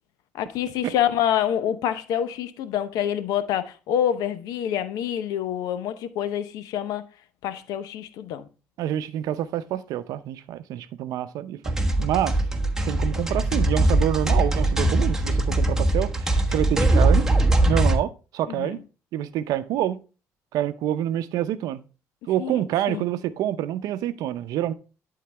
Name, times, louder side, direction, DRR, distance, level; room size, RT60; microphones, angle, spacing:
voice 1, 0.3-7.1 7.4-8.5 18.5-18.8 22.4-22.6 22.9-23.0, left 10 dB, 85° left, 0.8 m, -26 dB
voice 2, 8.8-12.4 12.9-17.3 17.7-18.8 19.1-20.0 20.5-21.8 22.3-24.7, right 12 dB, 80° right, 0.6 m, -27 dB
sound 1, 11.7-18.0, right 2 dB, 10° right, 1.3 m, -21 dB
11.5 x 3.9 x 3.4 m
supercardioid pair, 75°, 6 cm